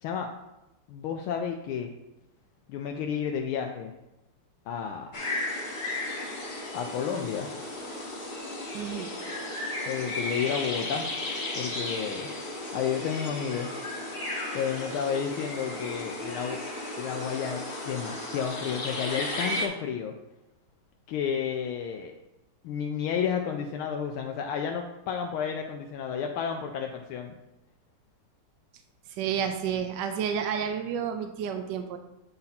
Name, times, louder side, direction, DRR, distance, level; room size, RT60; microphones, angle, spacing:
voice 1, 0.9-1.9 2.7-3.9 4.7-5.5 6.7-7.5 9.9-11.1 11.6-12.3 12.7-13.7 14.5-16.6 17.0-20.1 21.1-22.2 22.6-27.3, left 7 dB, 80° left, 3 dB, 1.4 m, -31 dB
sound 1, 5.1-19.7, left 1 dB, 35° left, 1.1 m, -34 dB
voice 2, 8.7-9.1 29.2-32.0, right 8 dB, 75° right, 6 dB, 1.0 m, -30 dB
8.7 x 4.2 x 4.0 m, 0.93 s
omnidirectional pair, 2.4 m